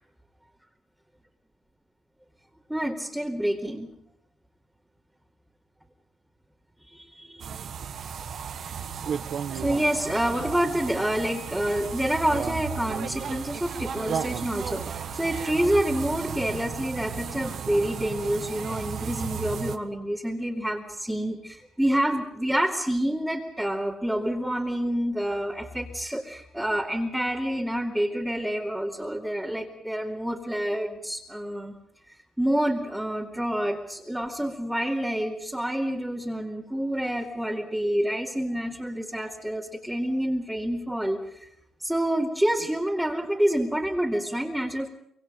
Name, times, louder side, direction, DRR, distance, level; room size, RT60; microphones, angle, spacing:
voice 1, 2.7-3.9 6.9-7.6 9.5-31.7 32.4-41.5 41.8-44.9, right 1 dB, 5° right, -4 dB, 2.5 m, -28 dB
sound 1, 7.4-19.8, right 7 dB, 60° right, 1.4 m, -34 dB
25.5 x 22.5 x 5.3 m, 0.74 s
cardioid pair, 90°, 0 cm